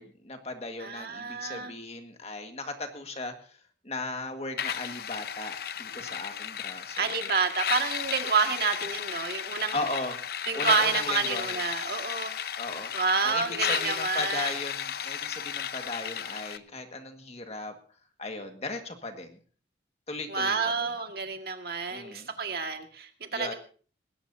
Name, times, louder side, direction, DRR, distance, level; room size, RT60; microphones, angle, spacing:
voice 1, 0.0-3.6 3.8-7.1 9.7-10.2 10.5-11.6 12.5-12.9 13.2-17.7 18.2-19.4 20.1-20.9 21.9-22.3 23.3-23.5, left 2 dB, 35° left, 5 dB, 1.8 m, -37 dB
voice 2, 0.8-1.7 7.0-9.8 10.5-12.3 12.9-14.5 20.3-23.5, right 5 dB, 55° right, 4 dB, 2.0 m, -29 dB
sound 1, 4.6-16.6, left 8 dB, 55° left, 0.7 m, -34 dB
20.0 x 17.5 x 2.8 m, 0.42 s
head